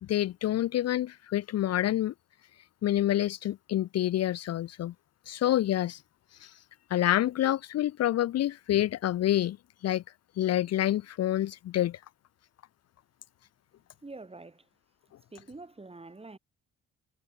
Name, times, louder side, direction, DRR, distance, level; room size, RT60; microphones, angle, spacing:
voice 1, 0.1-2.1 2.8-4.9 5.3-6.0 6.4-6.5 6.9-9.6 9.8-10.0 10.4-12.0, left 13 dB, 55° left, 0.6 m, -27 dB
voice 2, 14.0-14.7 15.3-16.4, right 3 dB, 20° right, 5.9 m, -46 dB
cardioid pair, 90°, 30 cm